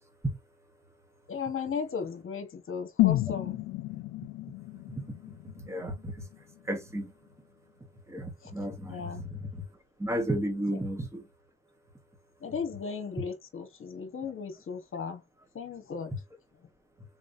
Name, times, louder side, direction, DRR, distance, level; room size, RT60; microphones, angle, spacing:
voice 1, 1.3-3.6 8.4-8.5 8.9-9.2 12.4-15.2 15.5-16.1, left 6 dB, 45° left, 1.4 m, -36 dB
sound 1, 3.0-7.0 7.3-7.4, left 17 dB, 80° left, 0.5 m, -31 dB
voice 2, 5.6-6.3 6.6-7.1 8.1-9.6 10.0-11.3, right 1 dB, 10° right, 1.4 m, -33 dB
4.0 x 3.1 x 2.6 m
cardioid pair, 90°, 30 cm